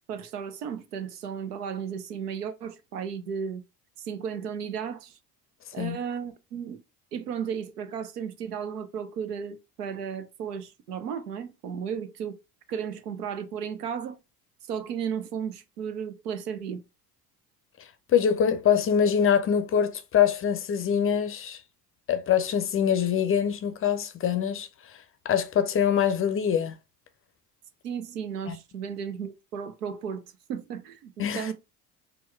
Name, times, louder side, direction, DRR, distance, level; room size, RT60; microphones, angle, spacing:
voice 1, 0.1-3.6 4.0-5.2 5.7-6.8 7.1-12.4 12.7-14.2 14.7-16.8 27.8-30.2 30.5-31.5, right 7 dB, 80° right, 0.7 m, -34 dB
voice 2, 18.1-21.6 22.1-24.7 25.2-26.7 28.5-28.6 31.2-31.5, left 8 dB, 30° left, 0.5 m, -24 dB
4.3 x 2.2 x 3.2 m
hypercardioid pair, 65°, 47 cm